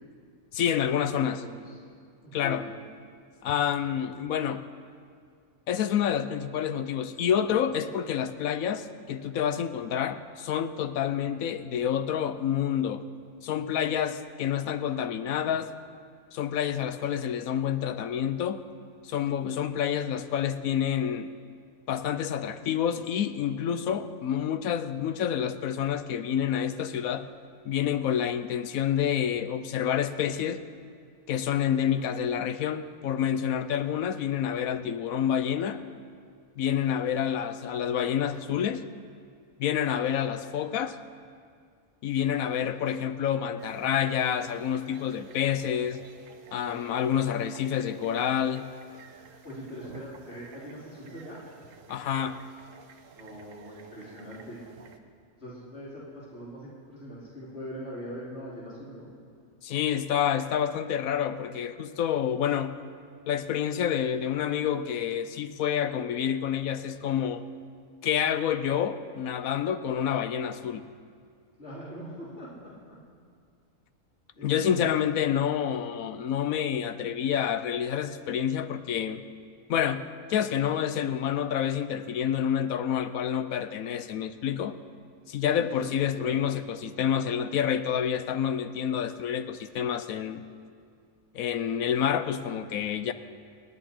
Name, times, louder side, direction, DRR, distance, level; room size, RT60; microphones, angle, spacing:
voice 1, 0.5-1.4 2.3-2.7 3.4-4.7 5.7-13.0 13.4-15.7 16.3-18.6 19.0-21.3 21.9-27.3 27.6-30.6 31.3-35.8 36.6-38.9 39.6-41.0 42.0-46.0 46.5-48.7 51.9-52.4 59.6-62.8 63.3-67.4 68.0-70.8 74.4-79.2 79.7-84.8 85.3-90.5 91.3-93.1, left 9 dB, 75° left, 11 dB, 1.1 m, -28 dB
voice 2, 1.1-1.8 2.2-2.6 49.4-51.4 53.2-54.6 55.4-59.1 71.6-72.7 74.3-74.8 85.4-85.9 86.2-86.4, equal, 45° left, -7 dB, 3.3 m, -42 dB
sound 1, 43.6-55.0, right 5 dB, 65° right, 1.3 m, -52 dB
28.5 x 10.0 x 4.4 m, 2.2 s
omnidirectional pair, 1.5 m